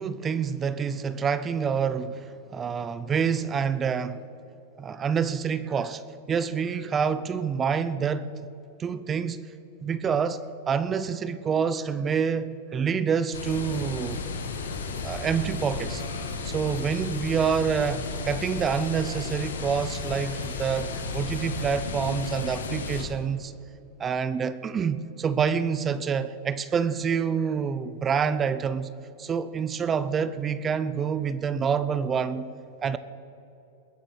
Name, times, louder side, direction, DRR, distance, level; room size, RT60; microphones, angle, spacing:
voice 1, 0.0-4.2 4.8-6.0 6.3-8.3 8.8-9.4 9.8-10.4 10.7-14.2 15.0-16.0 16.4-23.5 24.0-28.9 29.2-32.5 32.8-33.0, right 6 dB, 25° right, 0.6 m, -27 dB
sound 1, 13.3-23.0, left 4 dB, 90° left, 1.7 m, -33 dB
21.0 x 7.4 x 6.4 m
hypercardioid pair, 115°, 0 cm